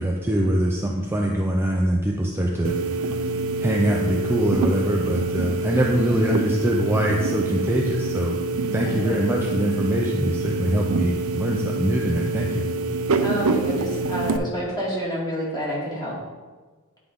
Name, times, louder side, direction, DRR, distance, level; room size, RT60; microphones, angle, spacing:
voice 1, 0.0-2.7 3.0-3.1 3.6-8.4 8.7-12.7, right 1 dB, 10° right, -1 dB, 0.5 m, -23 dB
sound 1, 2.6-14.4, right 3 dB, 85° right, 0.5 m, -26 dB
voice 2, 5.7-6.4 8.7-9.2 13.2-16.2, equal, 20° left, -6 dB, 2.3 m, -28 dB
9.7 x 4.9 x 3.7 m, 1.3 s
head